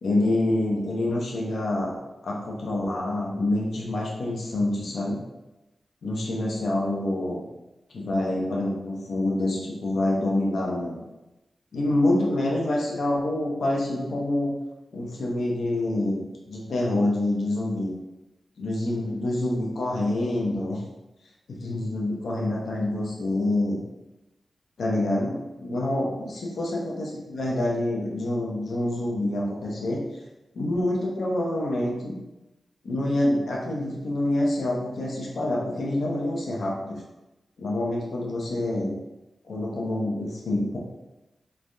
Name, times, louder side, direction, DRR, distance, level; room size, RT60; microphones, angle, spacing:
voice 1, 0.0-5.2 6.0-7.4 7.9-11.0 11.7-14.5 14.9-17.9 18.6-20.8 21.5-23.8 24.8-30.0 30.5-32.1 32.8-37.0 37.6-38.9 39.4-40.8, left 1 dB, 80° left, -3 dB, 0.6 m, -26 dB
3.2 x 2.2 x 2.5 m, 0.99 s
cardioid pair, 70°, 0 cm